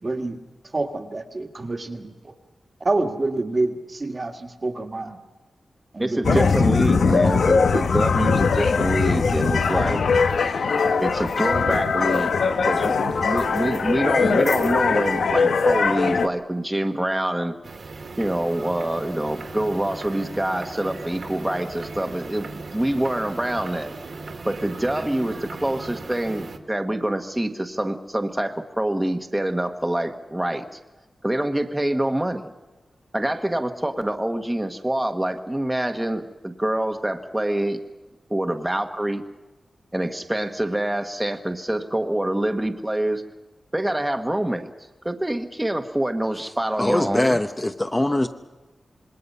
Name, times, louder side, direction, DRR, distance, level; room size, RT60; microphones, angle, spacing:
voice 1, 0.0-0.4 0.7-2.3 2.8-5.2 5.9-6.5, right 2 dB, 30° right, 5 dB, 1.7 m, -27 dB
voice 2, 6.0-10.0 11.0-12.3 12.6-17.5 18.2-23.9 24.4-30.8 31.2-32.5 33.1-37.8 38.3-39.2 39.9-43.2 43.7-44.7 45.0-47.4, right 1 dB, 10° right, 6 dB, 1.3 m, -25 dB
sound 1, 6.2-16.3, left 5 dB, 80° left, 1.0 m, -21 dB
sound 2, 17.6-26.6, right 3 dB, 55° right, 1.9 m, -37 dB
voice 3, 46.8-48.3, left 1 dB, 15° left, 6 dB, 0.8 m, -22 dB
26.5 x 21.0 x 5.6 m, 1.2 s
wide cardioid pair, 145°, 0 cm